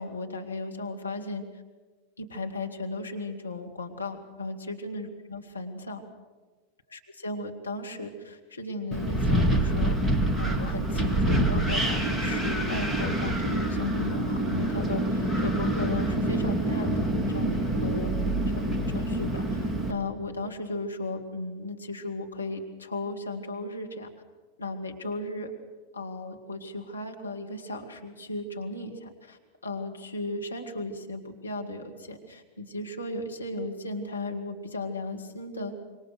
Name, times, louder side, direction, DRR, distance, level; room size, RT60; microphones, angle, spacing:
voice 1, 0.0-1.4 2.2-6.0 6.9-10.0 10.4-18.1 18.5-24.1 24.6-25.5 25.9-35.7, left 2 dB, 80° left, 3 dB, 2.4 m, -36 dB
Wind, 8.9-19.9, right 1 dB, 5° right, 2.3 m, -26 dB
26.0 x 23.0 x 6.5 m, 1.3 s
figure-of-eight pair, 90°, 0 cm